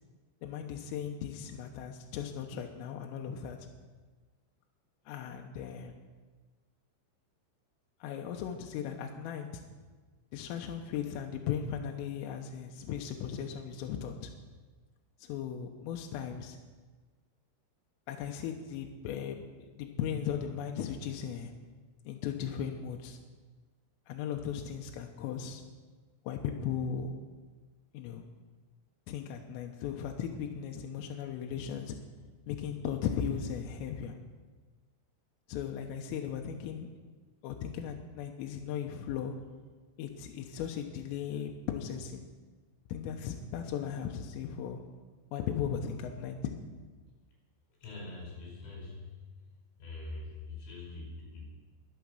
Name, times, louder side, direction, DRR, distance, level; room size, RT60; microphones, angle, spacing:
voice 1, 0.4-3.7 5.1-5.9 8.0-9.6 10.3-14.3 15.2-16.6 18.1-19.4 19.8-21.5 22.1-23.2 24.1-25.6 26.3-27.2 27.9-28.3 29.1-32.0 32.5-34.2 35.5-36.9 37.4-39.4 40.0-42.3 42.9-44.8 45.3-46.5, left 8 dB, 85° left, 3 dB, 3.5 m, -37 dB
voice 2, 47.8-49.4 49.8-51.5, left 3 dB, 60° left, -1 dB, 6.9 m, -43 dB
22.5 x 8.4 x 6.5 m, 1.4 s
omnidirectional pair, 5.9 m